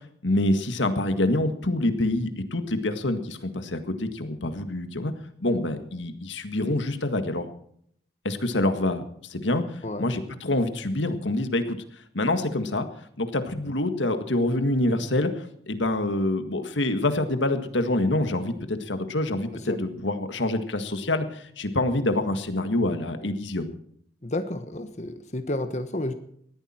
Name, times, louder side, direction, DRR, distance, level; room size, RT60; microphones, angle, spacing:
voice 1, 0.2-5.1 5.4-7.5 8.2-9.0 9.3-11.8 12.1-12.9 13.2-23.7, left 1 dB, 90° left, 8 dB, 1.8 m, -26 dB
voice 2, 24.2-26.1, left 1 dB, 40° left, 8 dB, 1.2 m, -31 dB
19.5 x 14.0 x 4.4 m, 0.66 s
head